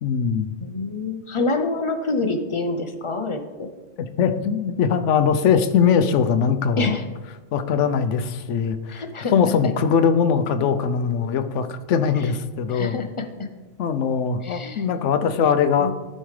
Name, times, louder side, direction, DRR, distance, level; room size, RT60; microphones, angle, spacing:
voice 1, 0.0-0.5 4.2-7.0 7.5-9.0 9.3-13.0 13.8-15.9, left 7 dB, 80° left, 10 dB, 0.9 m, -21 dB
voice 2, 0.6-3.7 6.8-7.0 8.9-9.5 12.7-13.5 14.4-14.8 15.8-15.9, left 3 dB, 35° left, 7 dB, 0.5 m, -27 dB
14.0 x 5.5 x 3.2 m, 1.3 s
omnidirectional pair, 1.2 m